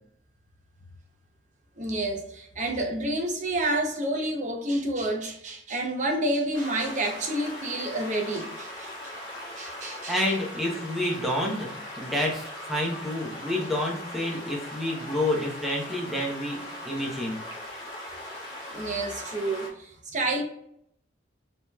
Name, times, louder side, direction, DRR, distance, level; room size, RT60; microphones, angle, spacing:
voice 1, 1.8-9.1 9.6-10.2 18.7-20.4, right 1 dB, 40° right, 0.8 m, -29 dB
sound 1, 6.5-19.7, left 1 dB, 25° left, 1.3 m, -40 dB
voice 2, 10.1-17.4, left 1 dB, ahead, 0.9 m, -29 dB
5.1 x 3.0 x 2.3 m
head